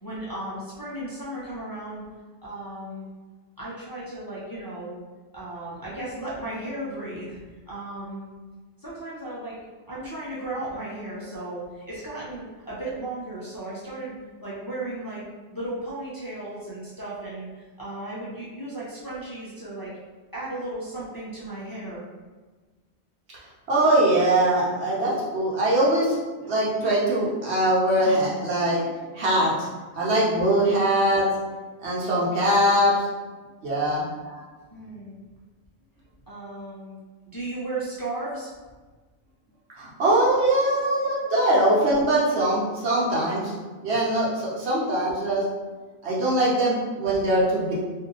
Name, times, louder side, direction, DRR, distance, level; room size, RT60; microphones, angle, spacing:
voice 1, 0.0-2.0 2.4-3.1 3.6-5.0 5.3-7.4 7.7-8.3 8.8-9.6 9.9-14.1 14.4-15.2 15.5-20.0 20.3-22.1 34.2-34.4 34.7-35.1 36.3-37.0 37.3-38.5 41.1-41.3 44.4-44.5, right 2 dB, 25° left, -8 dB, 0.6 m, -35 dB
voice 2, 23.7-28.8 29.1-29.7 29.9-31.3 31.8-33.1 33.6-34.0 39.8-43.5 43.8-45.4 46.0-47.7, right 1 dB, 70° right, -7 dB, 1.3 m, -22 dB
2.8 x 2.6 x 3.8 m, 1.3 s
omnidirectional pair, 1.1 m